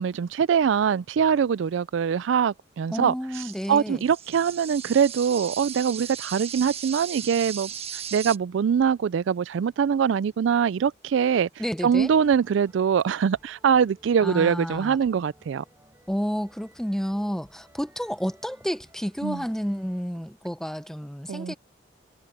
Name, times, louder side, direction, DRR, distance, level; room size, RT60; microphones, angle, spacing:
voice 1, 0.0-3.1 3.7-7.7 8.1-11.5 11.8-15.6 19.2-19.4 21.3-21.5, right 7 dB, 75° right, 0.3 m, -23 dB
voice 2, 2.9-4.0 11.6-12.1 14.2-15.0 16.1-21.5, equal, 5° left, 0.8 m, -30 dB
sound 1, 3.3-8.4, right 8 dB, 30° right, 1.2 m, -37 dB
sound 2, 11.8-20.1, right 1 dB, 15° right, 6.6 m, -58 dB
head